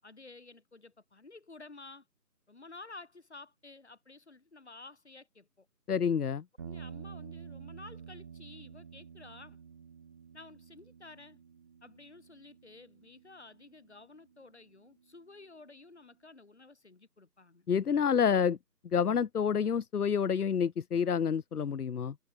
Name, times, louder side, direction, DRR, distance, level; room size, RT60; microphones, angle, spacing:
voice 1, 0.0-2.1 2.5-5.7 6.6-9.6 10.3-11.4 11.8-17.7 18.4-18.5, left 3 dB, 40° left, 5.3 m, -52 dB
voice 2, 5.9-6.4 17.7-18.6 18.9-22.2, left 7 dB, 65° left, 0.6 m, -28 dB
sound 1, 6.6-14.9, right 7 dB, 15° right, 6.8 m, -50 dB
figure-of-eight pair, 170°, 49 cm